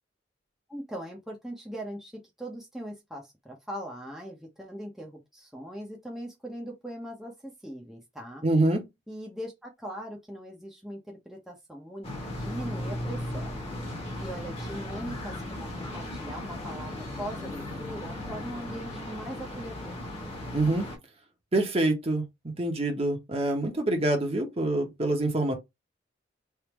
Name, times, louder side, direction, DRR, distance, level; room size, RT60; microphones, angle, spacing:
voice 1, 0.7-8.4 9.1-13.6 14.2-20.0, equal, ahead, 0.8 m, -40 dB
voice 2, 8.4-8.8 20.5-20.9 21.5-25.5, right 2 dB, 35° right, 1.1 m, -26 dB
sound 1, 12.0-21.0, left 1 dB, 35° left, 1.3 m, -36 dB
3.4 x 2.7 x 3.0 m
head